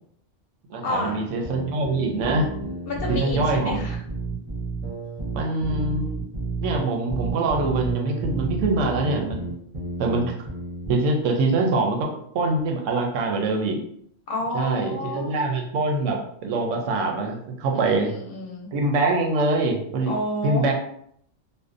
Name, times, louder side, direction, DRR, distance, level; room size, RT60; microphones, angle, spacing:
voice 1, 0.7-2.5 3.1-3.8 5.3-6.2 6.6-9.5 10.0-10.3 10.9-12.1 12.3-13.8 14.5-18.1 18.7-20.1 20.4-20.7, right 2 dB, 90° right, 2 dB, 0.9 m, -24 dB
sound 1, 0.9-10.9, right 3 dB, 40° right, 0.5 m, -31 dB
voice 2, 2.9-4.0 14.3-15.3 17.7-18.7 20.1-20.7, left 1 dB, 60° left, 0 dB, 0.7 m, -30 dB
2.5 x 2.1 x 2.4 m, 0.68 s
omnidirectional pair, 1.2 m